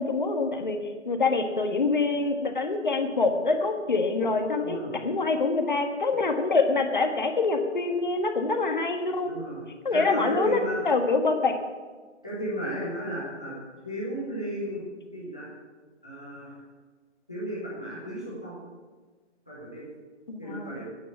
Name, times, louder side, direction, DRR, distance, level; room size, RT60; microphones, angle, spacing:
voice 1, 0.0-4.8 5.0-9.3 9.8-11.6 20.3-20.7, left 3 dB, 40° left, 5 dB, 1.6 m, -25 dB
voice 2, 4.6-5.0 9.2-9.6 9.9-10.8 12.2-13.5 13.8-14.8 15.1-15.5 16.0-16.6 17.3-18.6 19.5-19.8 20.4-20.8, equal, 5° left, -8 dB, 0.8 m, -34 dB
14.0 x 9.6 x 8.1 m, 1.4 s
figure-of-eight pair, 170°, 35 cm